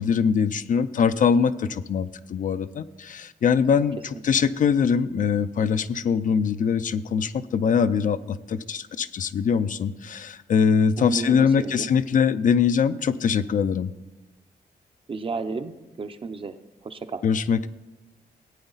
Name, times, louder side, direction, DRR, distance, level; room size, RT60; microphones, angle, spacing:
voice 1, 0.0-4.0 4.2-13.9 17.2-17.7, left 6 dB, 50° left, 12 dB, 0.4 m, -22 dB
voice 2, 11.0-11.9 15.1-17.2, right 4 dB, 30° right, 9 dB, 0.6 m, -33 dB
16.0 x 8.9 x 4.0 m, 1.1 s
wide cardioid pair, 165°, 17 cm